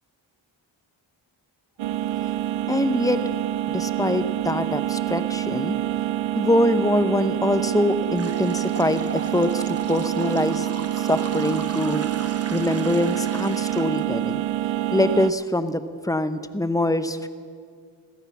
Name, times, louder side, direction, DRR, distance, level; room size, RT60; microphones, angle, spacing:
sound 1, 1.8-15.3, right 13 dB, 75° right, 0.5 m, -26 dB
voice 1, 2.7-3.2 3.7-5.8 6.4-10.7 11.0-12.0 12.5-14.4 14.9-17.3, left 1 dB, 5° left, 11 dB, 0.9 m, -24 dB
sound 2, 8.1-14.0, right 4 dB, 30° right, 1.1 m, -38 dB
16.0 x 14.0 x 6.1 m, 2.1 s
cardioid pair, 45°, 47 cm